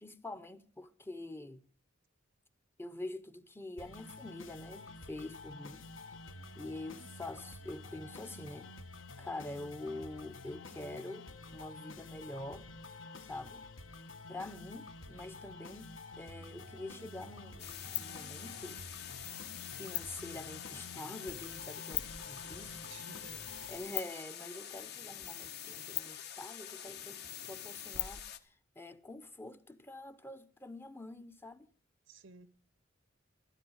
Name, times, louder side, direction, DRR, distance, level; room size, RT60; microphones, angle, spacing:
voice 1, 0.0-1.7 2.8-5.9 6.5-8.7 9.2-12.7 13.2-13.6 14.3-18.8 19.7-22.8 23.7-31.7, left 2 dB, 10° left, 0.8 m, -46 dB
sound 1, 3.8-23.8, left 3 dB, 70° left, 1.4 m, -50 dB
sound 2, 17.6-28.4, left 11 dB, 55° left, 1.1 m, -43 dB
voice 2, 22.9-23.5 32.1-32.5, right 4 dB, 65° right, 0.9 m, -54 dB
13.0 x 13.0 x 6.3 m
head